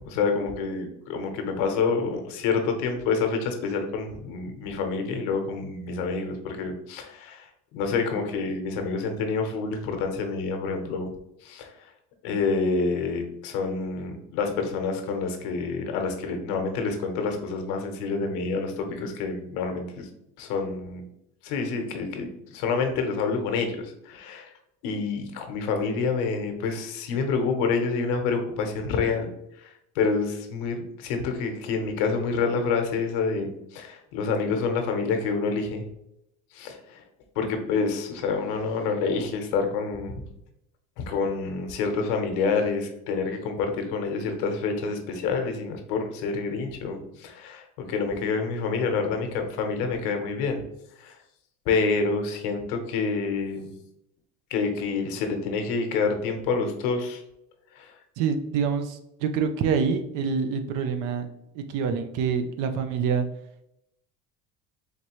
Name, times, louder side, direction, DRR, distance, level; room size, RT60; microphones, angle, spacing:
voice 1, 0.0-11.1 11.4-11.9 12.2-20.1 20.4-21.0 21.4-24.5 24.8-29.3 29.6-35.8 36.5-37.0 37.3-40.2 41.0-50.6 51.0-51.2 51.7-53.7 54.5-57.2 57.7-57.9, left 4 dB, 90° left, 4 dB, 1.0 m, -28 dB
voice 2, 58.2-61.3 61.5-63.3, right 6 dB, 65° right, 7 dB, 0.6 m, -26 dB
4.1 x 3.2 x 3.0 m, 0.81 s
cardioid pair, 145°, 33 cm